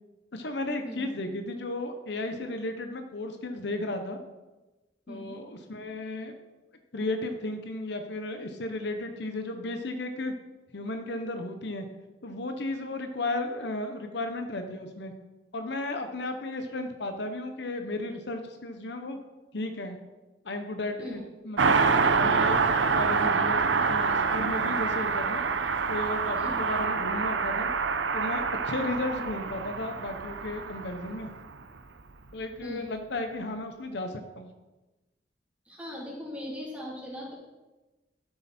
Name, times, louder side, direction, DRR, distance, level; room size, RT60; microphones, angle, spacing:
voice 1, 0.3-4.2 5.1-6.3 6.9-10.3 10.7-11.9 12.2-15.1 15.5-19.2 19.5-20.0 20.4-22.6 22.9-25.4 25.9-27.7 28.1-31.3 32.3-34.5, left 2 dB, 65° left, 6 dB, 0.9 m, -34 dB
voice 2, 5.1-5.4 21.0-21.2 26.4-26.6 32.6-32.9 35.6-37.3, equal, 10° right, -5 dB, 3.3 m, -39 dB
Car passing by, 21.6-31.5 31.8-31.9, right 5 dB, 85° right, 0.7 m, -26 dB
12.5 x 7.8 x 4.4 m, 1.1 s
head